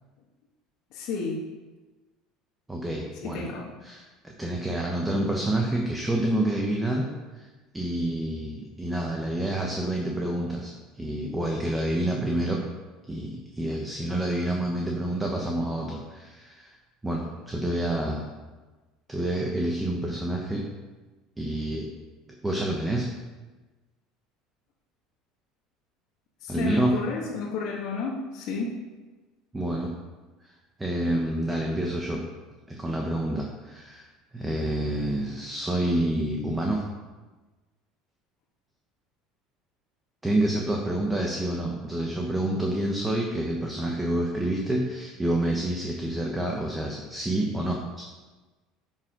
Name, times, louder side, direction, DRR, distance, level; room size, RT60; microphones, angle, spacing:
voice 1, 0.9-1.4 3.2-3.7 26.4-28.8, left 4 dB, 60° left, -5 dB, 1.6 m, -31 dB
voice 2, 2.7-3.5 3.8-7.1 7.3-7.5 7.7-12.6 13.1-16.8 17.0-18.3 19.1-20.7 21.4-21.9 22.4-23.1 26.5-26.9 29.5-29.9 30.4-30.5 30.8-32.2 32.7-34.1 34.3-36.8 40.2-48.0, right 1 dB, 10° right, 0 dB, 1.1 m, -28 dB
9.3 x 6.3 x 5.1 m, 1.2 s
cardioid pair, 145°, 0 cm